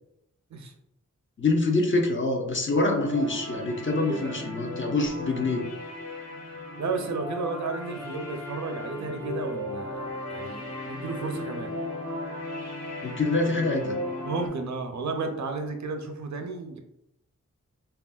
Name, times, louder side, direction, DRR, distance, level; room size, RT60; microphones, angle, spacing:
voice 1, 1.4-5.6 13.0-14.0, left 2 dB, 40° left, 2 dB, 0.6 m, -25 dB
sound 1, 2.8-14.5, left 1 dB, 60° left, 1.0 m, -36 dB
voice 2, 3.9-4.5 6.8-11.7 14.2-16.8, right 4 dB, 65° right, 5 dB, 0.5 m, -33 dB
3.3 x 2.3 x 2.3 m, 0.83 s
wide cardioid pair, 65°, 30 cm